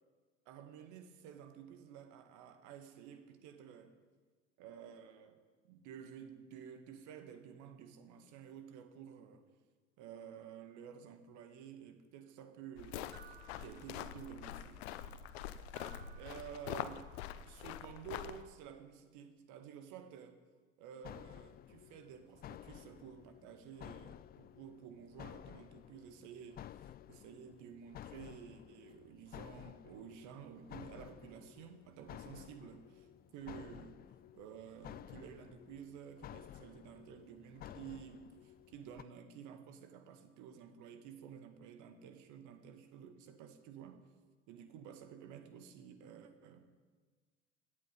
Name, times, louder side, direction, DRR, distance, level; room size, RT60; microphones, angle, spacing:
voice 1, 0.5-3.9 4.6-5.4 5.7-9.4 10.0-14.8 16.2-17.1 17.4-20.4 20.8-33.1 33.3-34.0 34.3-44.0 44.5-46.6, right 8 dB, 55° right, 8 dB, 1.9 m, -52 dB
sound 1, 12.8-18.4, left 11 dB, 60° left, 1.0 m, -45 dB
sound 2, 13.1-14.6 15.8-17.2, right 9 dB, 30° right, 1.3 m, -61 dB
sound 3, 21.0-39.0, left 12 dB, 25° left, 0.4 m, -53 dB
26.0 x 9.6 x 5.3 m, 1.4 s
figure-of-eight pair, 60°, 35 cm